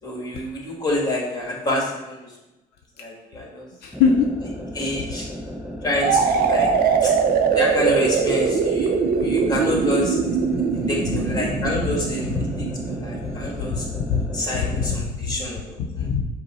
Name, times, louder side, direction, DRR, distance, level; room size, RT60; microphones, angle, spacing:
voice 1, 0.0-2.3 3.0-3.7 4.7-5.3 5.8-6.7 7.0-7.1 7.5-8.9 9.2-10.2 10.9-12.3 12.8-13.9 14.3-16.1, left 1 dB, 25° left, -2 dB, 1.4 m, -27 dB
voice 2, 3.8-4.3 12.3-12.7 13.6-14.3 14.5-15.4 16.0-16.2, left 5 dB, 75° left, 1 dB, 0.5 m, -23 dB
sound 1, 3.9-15.0, equal, ahead, 0.6 m, -34 dB
sound 2, 6.0-13.7, right 6 dB, 60° right, 0.5 m, -22 dB
5.3 x 2.1 x 4.1 m, 1.0 s
cardioid pair, 110°, 17 cm